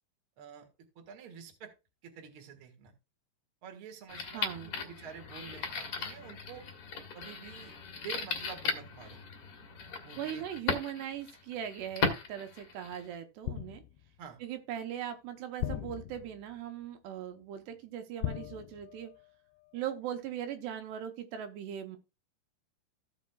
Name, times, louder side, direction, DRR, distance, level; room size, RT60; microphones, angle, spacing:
voice 1, 0.4-0.7 0.9-1.7 2.0-2.9 3.6-6.7 7.1-9.2 10.0-10.4 14.2-14.4, right 8 dB, 55° right, 4 dB, 1.5 m, -48 dB
sound 1, 4.1-13.1, left 5 dB, 65° left, 1.4 m, -37 dB
voice 2, 4.3-4.7 10.2-13.8 14.4-19.1 19.7-22.0, right 10 dB, 75° right, 6 dB, 2.8 m, -39 dB
sound 2, 13.5-14.2 15.6-16.6 18.2-19.3 19.6-19.8, left 12 dB, 80° left, 2.5 m, -39 dB
15.5 x 7.2 x 2.3 m, 0.28 s
omnidirectional pair, 5.2 m